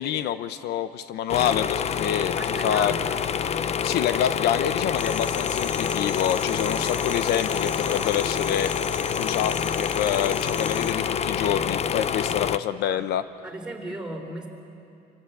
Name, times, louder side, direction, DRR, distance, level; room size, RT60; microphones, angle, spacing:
voice 1, 0.0-2.4 2.6-2.9 3.8-8.7 9.2-13.3, left 10 dB, 80° left, 12 dB, 0.8 m, -27 dB
sound 1, 1.3-12.6, left 7 dB, 40° left, 0.7 m, -27 dB
voice 2, 2.3-3.2 12.9-13.0 13.4-14.5, right 1 dB, 5° right, 0 dB, 4.0 m, -35 dB
sound 2, 5.0-10.9, left 3 dB, 25° left, 1.5 m, -39 dB
26.5 x 17.5 x 8.3 m, 2.7 s
cardioid pair, 110°, 17 cm